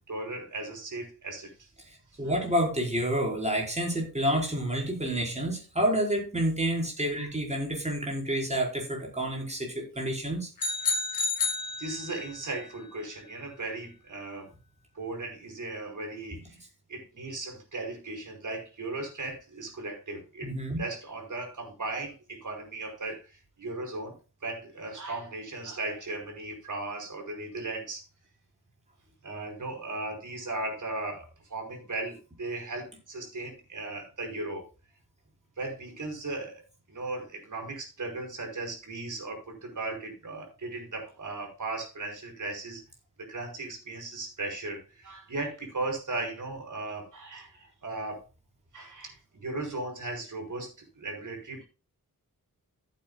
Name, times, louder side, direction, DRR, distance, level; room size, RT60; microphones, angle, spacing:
voice 1, 0.1-1.7 2.2-2.4 11.8-14.5 15.0-16.6 16.9-24.1 24.4-28.0 29.2-34.7 35.6-36.6 36.9-42.8 43.2-48.2 48.7-51.6, right 2 dB, 60° right, 3 dB, 5.2 m, -37 dB
voice 2, 2.2-10.5 20.4-20.8, right 1 dB, 20° right, 0 dB, 5.1 m, -29 dB
sound 1, 10.6-12.4, left 3 dB, 80° left, 2.5 m, -30 dB
15.5 x 8.6 x 2.4 m, 0.31 s
wide cardioid pair, 130°, 34 cm